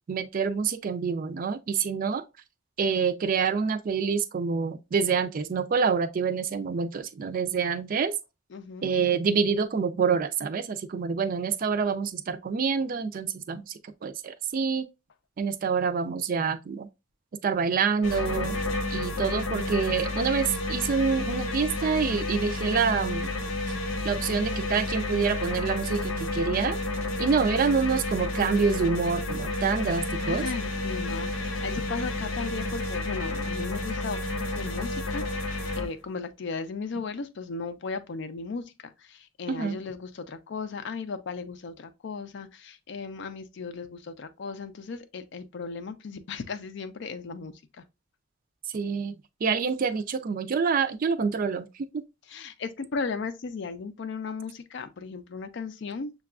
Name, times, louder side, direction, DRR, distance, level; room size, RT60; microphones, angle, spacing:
voice 1, 0.1-2.2 2.8-8.1 8.8-13.7 14.0-14.9 15.4-16.9 17.4-18.6 18.9-23.3 24.0-26.8 27.2-30.4 39.5-39.8 48.7-51.7 51.9-52.0, right 5 dB, 45° right, 0.3 m, -27 dB
voice 2, 8.5-8.9 30.3-34.2 34.5-47.8 52.3-56.1, left 4 dB, 60° left, 0.4 m, -36 dB
sound 1, 18.0-35.9, left 2 dB, 85° left, 0.8 m, -31 dB
6.6 x 2.3 x 2.3 m
head